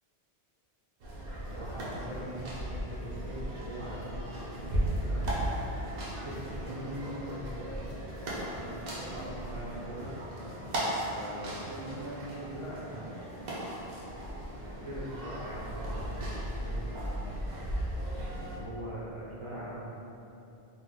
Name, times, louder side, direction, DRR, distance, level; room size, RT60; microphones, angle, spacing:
sound 1, 1.0-18.6, right 1 dB, 65° right, 0.8 m, -36 dB
voice 1, 1.5-5.5 5.8-7.8 8.0-10.1 11.1-13.5 14.6-17.2 18.4-19.9, right 1 dB, 40° right, -7 dB, 0.5 m, -42 dB
2.9 x 2.1 x 3.7 m, 2.9 s
omnidirectional pair, 1.1 m